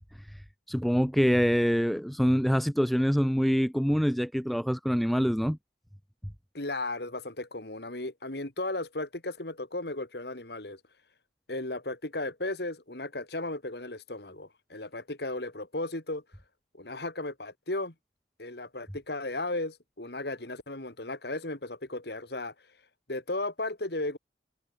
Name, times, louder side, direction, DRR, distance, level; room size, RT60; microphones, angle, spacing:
voice 1, 0.7-5.6, equal, ahead, 0.4 m, -25 dB
voice 2, 6.5-10.8 11.5-16.2 16.7-17.9 18.4-22.5 23.1-24.2, left 2 dB, 60° left, 2.4 m, -35 dB
head